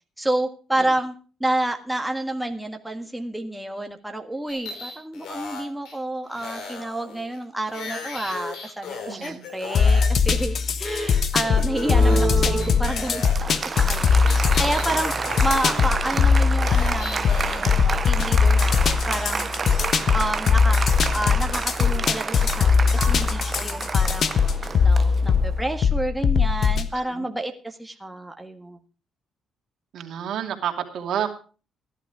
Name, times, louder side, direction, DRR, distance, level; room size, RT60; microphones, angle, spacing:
voice 1, 0.2-1.1 1.4-15.1 15.4-19.5 20.1-20.8 21.1-24.3 24.8-28.8, right 1 dB, 5° right, 4 dB, 1.7 m, -29 dB
sound 1, 4.5-6.0 6.3-10.1 10.4-10.5 10.8-12.3 12.6-17.8, left 4 dB, 80° left, 3.9 m, -36 dB
voice 2, 9.1-9.4 26.9-27.3 29.9-31.3, right 9 dB, 70° right, 3 dB, 2.6 m, -30 dB
sound 2, 9.7-26.9, left 5 dB, 55° left, 1.3 m, -21 dB
Applause, 11.6-25.7, right 5 dB, 35° right, 0.8 m, -30 dB
15.5 x 11.0 x 4.9 m, 0.38 s
cardioid pair, 90°, 0 cm